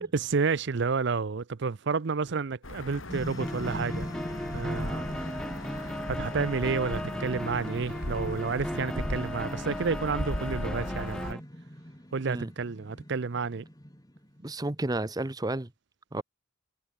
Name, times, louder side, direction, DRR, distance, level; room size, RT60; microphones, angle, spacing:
voice 1, 0.0-4.1 4.5-5.4 5.7-11.4 12.1-13.6 16.2-16.3, right 4 dB, 60° right, 0.6 m, -30 dB
sound 1, 2.6-11.3, left 1 dB, 80° left, 3.8 m, -38 dB
sound 2, 3.1-14.5, equal, 20° left, 4.3 m, -41 dB
sound 3, 3.4-11.4, equal, 5° left, 1.0 m, -37 dB
voice 2, 14.4-15.7 16.1-16.2, right 2 dB, 20° right, 0.8 m, -32 dB
head